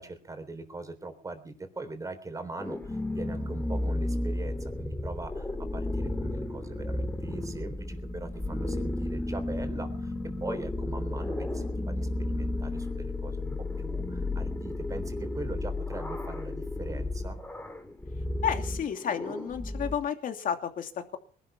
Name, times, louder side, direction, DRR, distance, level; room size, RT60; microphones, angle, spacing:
voice 1, 0.0-13.5 13.8-17.4, right 2 dB, 20° right, 7 dB, 3.7 m, -41 dB
sound 1, 2.6-19.9, left 2 dB, 10° left, 2.3 m, -33 dB
voice 2, 18.4-21.2, left 8 dB, 55° left, 6 dB, 2.7 m, -31 dB
20.5 x 12.0 x 5.9 m, 0.42 s
cardioid pair, 110°, 17 cm